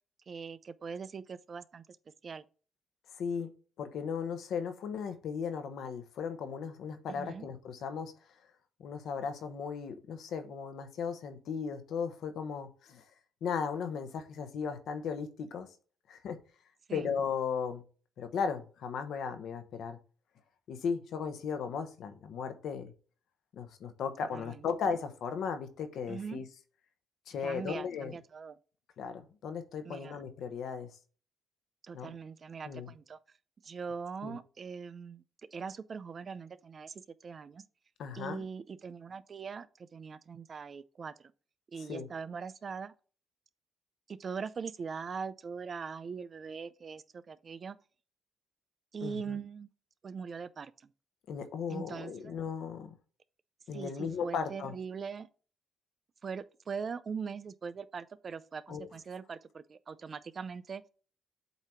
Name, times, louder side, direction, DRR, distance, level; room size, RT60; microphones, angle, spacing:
voice 1, 0.3-1.9 2.2-2.4 7.1-7.5 16.9-17.1 24.3-24.7 26.1-26.4 27.4-28.6 29.9-30.2 31.8-33.2 33.6-35.2 35.5-36.9 37.2-37.6 38.1-41.3 41.7-42.9 44.1-47.8 48.9-49.7 50.0-50.7 51.7-52.3 53.7-55.3 56.2-60.8, right 5 dB, 45° right, 0.4 m, -41 dB
voice 2, 3.1-3.5 3.8-8.1 8.8-13.1 13.4-15.7 16.1-16.4 16.9-17.8 18.2-20.0 20.7-22.9 23.5-26.5 27.3-28.2 29.0-30.9 31.9-32.2 32.6-32.9 34.2-34.4 38.0-38.5 41.8-42.1 49.0-49.4 51.3-52.9 53.7-54.7 58.7-58.9, left 6 dB, 75° left, 1.0 m, -36 dB
8.1 x 2.8 x 4.8 m
cardioid pair, 90°, 0 cm